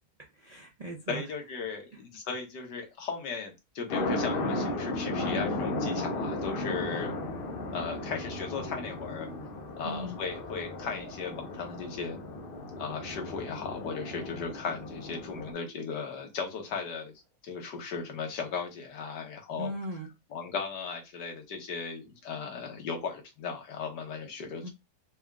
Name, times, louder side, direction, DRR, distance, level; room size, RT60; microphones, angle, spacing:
voice 1, 0.2-1.2 9.8-10.2 19.6-20.1 24.6-24.7, right 1 dB, 55° right, -2 dB, 0.4 m, -38 dB
voice 2, 1.1-7.2 7.7-9.3 9.8-12.2 12.8-17.1 17.4-19.7 20.3-24.7, left 5 dB, 80° left, 3 dB, 1.7 m, -36 dB
sound 1, 3.9-15.5, left 2 dB, 60° left, 0.5 m, -35 dB
4.2 x 2.4 x 3.4 m, 0.24 s
omnidirectional pair, 1.8 m